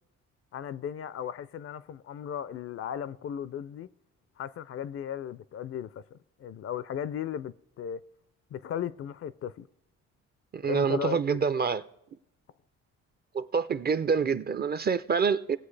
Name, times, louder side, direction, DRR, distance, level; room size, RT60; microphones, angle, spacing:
voice 1, 0.5-3.9 4.4-8.0 8.5-9.7 10.6-11.4, left 9 dB, 50° left, 0.4 m, -36 dB
voice 2, 10.5-11.8 13.3-15.6, right 6 dB, 35° right, 0.5 m, -26 dB
19.0 x 8.0 x 3.3 m
cardioid pair, 90°, 30 cm